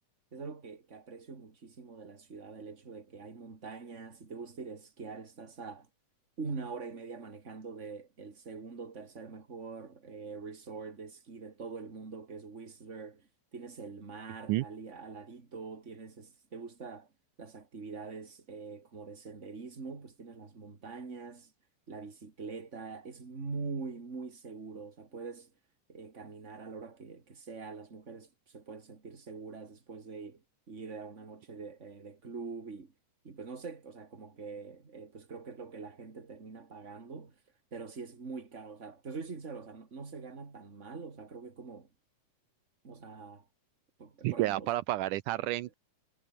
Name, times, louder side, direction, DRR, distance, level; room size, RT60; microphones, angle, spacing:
voice 1, 0.3-5.9 6.4-17.1 17.4-21.5 21.9-25.5 25.9-32.9 33.2-37.4 37.7-41.9 42.8-43.5 44.0-44.7, right 4 dB, 25° right, 2.9 m, -44 dB
voice 2, 44.2-45.7, right 16 dB, 80° right, 2.2 m, -30 dB
omnidirectional pair, 3.7 m